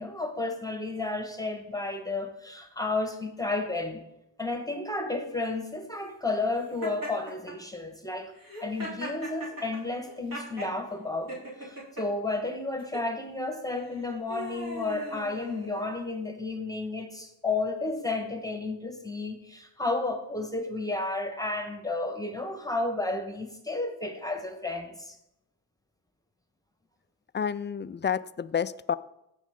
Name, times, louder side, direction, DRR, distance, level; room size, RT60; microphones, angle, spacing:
voice 1, 0.0-4.0 4.4-8.3 8.6-11.3 11.6-25.2, left 2 dB, 10° left, 5 dB, 1.3 m, -32 dB
Laughter, 6.8-7.5 8.4-10.7 11.3-12.0 12.8-13.1 13.8-16.0, equal, 45° right, 3.5 m, -39 dB
voice 2, 27.3-28.9, left 7 dB, 25° left, 15 dB, 0.3 m, -29 dB
15.0 x 5.3 x 3.7 m, 0.85 s
cardioid pair, 55°, 47 cm